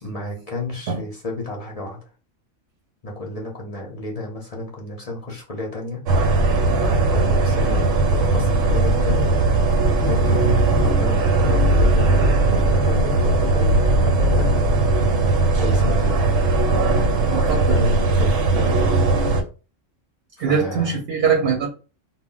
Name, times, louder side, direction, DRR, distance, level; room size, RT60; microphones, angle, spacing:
voice 1, 0.0-2.0 3.0-6.0 6.8-9.3 10.0-14.6 15.2-15.3 15.6-16.2 17.3-19.0 20.4-21.0, left 2 dB, 45° left, -1 dB, 0.5 m, -32 dB
sound 1, 6.1-19.4, right 2 dB, 90° right, 1.0 m, -18 dB
voice 2, 17.3-18.0 20.4-21.7, right 6 dB, 60° right, 0 dB, 0.7 m, -21 dB
2.2 x 2.0 x 3.7 m, 0.34 s
omnidirectional pair, 1.3 m